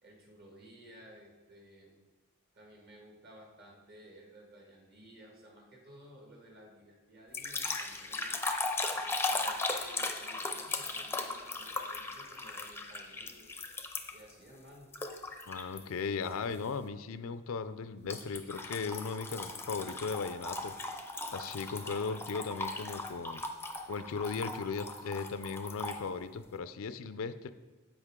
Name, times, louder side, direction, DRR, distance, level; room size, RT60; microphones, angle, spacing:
voice 1, 0.0-1.9 2.5-8.4 8.9-13.5 14.1-14.9, right 1 dB, 45° right, -2 dB, 1.9 m, -55 dB
sound 1, 7.3-14.3 14.9-15.8 16.2-16.5 18.1-26.0, left 3 dB, 10° left, 0.5 m, -37 dB
voice 2, 15.5-20.7 21.3-23.4 23.9-27.5, left 5 dB, 65° left, 12 dB, 0.4 m, -37 dB
14.5 x 5.2 x 3.7 m, 1.2 s
head